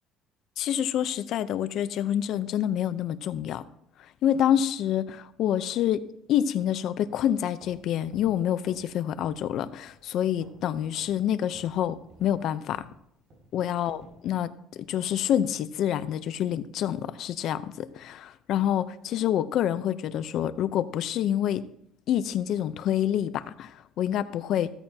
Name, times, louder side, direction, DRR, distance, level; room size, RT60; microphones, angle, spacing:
voice 1, 0.6-3.6 4.2-6.0 6.3-12.8 13.5-14.5 14.8-21.6 22.1-24.7, left 10 dB, 55° left, 13 dB, 0.7 m, -27 dB
sound 1, 7.4-8.9 9.2-9.5 9.8-10.7 11.0-11.2 11.5-14.2, right 1 dB, 40° right, 5.3 m, -54 dB
15.5 x 13.5 x 2.9 m, 0.74 s
cardioid pair, 135°, 0 cm